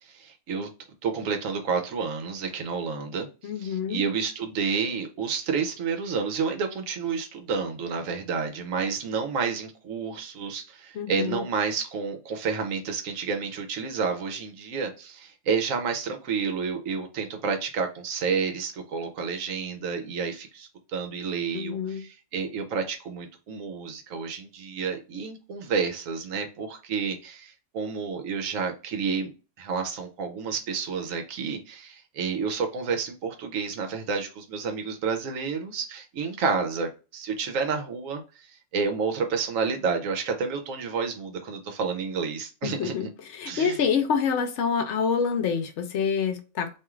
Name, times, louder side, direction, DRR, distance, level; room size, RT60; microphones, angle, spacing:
voice 1, 0.0-0.7 1.0-3.3 3.6-29.3 29.6-43.1 43.5-43.8, right 5 dB, 85° right, 1.1 m, -30 dB
voice 2, 3.4-4.0 10.9-11.4 21.5-22.0 42.6-46.8, left 6 dB, 70° left, 0.8 m, -27 dB
2.7 x 2.4 x 3.0 m
omnidirectional pair, 1.3 m